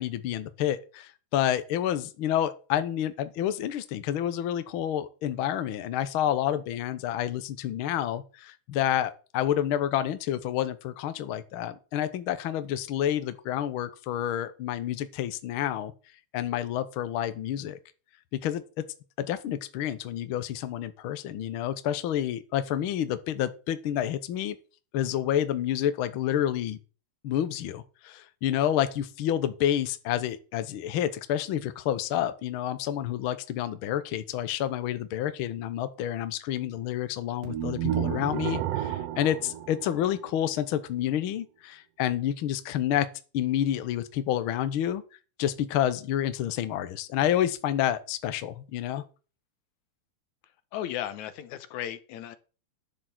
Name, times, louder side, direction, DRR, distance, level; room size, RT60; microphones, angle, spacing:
voice 1, 0.0-15.9 16.3-17.8 18.3-18.6 19.2-24.6 24.9-26.8 27.2-43.1 43.3-45.0 45.4-49.0, left 11 dB, 65° left, 1.4 m, -29 dB
sound 1, 37.4-40.6, right 11 dB, 70° right, 1.7 m, -32 dB
voice 2, 50.7-52.4, left 11 dB, 85° left, 2.3 m, -35 dB
10.0 x 7.1 x 5.9 m
omnidirectional pair, 3.3 m